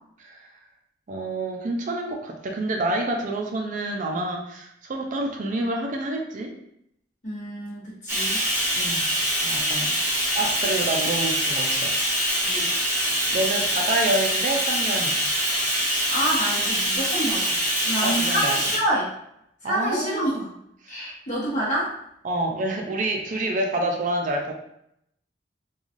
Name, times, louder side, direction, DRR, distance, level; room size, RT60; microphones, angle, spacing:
voice 1, 0.2-0.5 1.1-6.5 8.7-9.1 9.4-11.9 13.3-15.3 18.0-18.5 19.6-20.5 20.8-21.1 22.2-24.5, right 2 dB, 45° right, 1 dB, 0.4 m, -28 dB
voice 2, 7.2-8.4 9.6-9.9 12.4-12.7 16.1-19.1 19.6-20.5 20.9-21.9, right 1 dB, 45° left, -5 dB, 1.0 m, -28 dB
Bathtub (filling or washing), 8.1-18.8, equal, 15° right, 0.9 m, -24 dB
3.1 x 2.3 x 2.4 m, 0.75 s
head